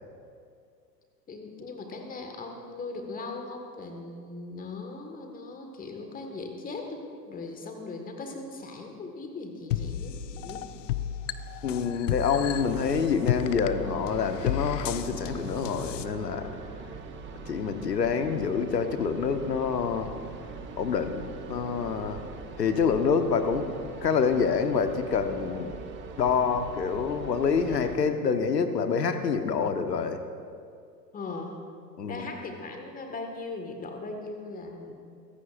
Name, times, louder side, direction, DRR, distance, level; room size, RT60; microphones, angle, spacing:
voice 1, 1.3-10.7 31.1-31.6 32.1-34.9, left 3 dB, 15° left, 3 dB, 1.8 m, -39 dB
sound 1, 9.7-16.1, left 10 dB, 50° left, 0.6 m, -33 dB
voice 2, 11.6-16.5 17.4-20.1 20.8-22.2 22.6-23.7 24.0-25.7 26.2-30.2 32.0-32.3, left 6 dB, 70° left, 8 dB, 1.3 m, -27 dB
sound 2, 12.4-27.9, right 4 dB, 25° right, 1.3 m, -42 dB
24.0 x 15.5 x 2.6 m, 2.3 s
figure-of-eight pair, 95°, 50 cm